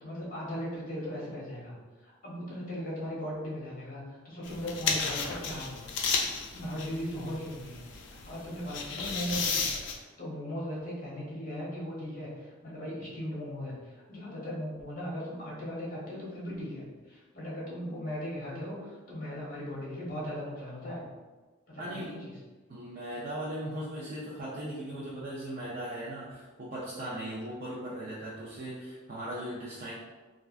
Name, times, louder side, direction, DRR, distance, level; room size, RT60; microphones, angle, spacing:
voice 1, 0.0-1.8 2.0-5.9 6.5-9.7 9.9-21.0 21.7-22.3, equal, 40° left, -5 dB, 1.0 m, -38 dB
sound 1, 4.4-9.9, left 5 dB, 60° left, 0.4 m, -33 dB
voice 2, 21.8-22.1 22.7-29.9, right 1 dB, 45° right, -9 dB, 0.5 m, -38 dB
3.3 x 2.4 x 2.4 m, 1.3 s
head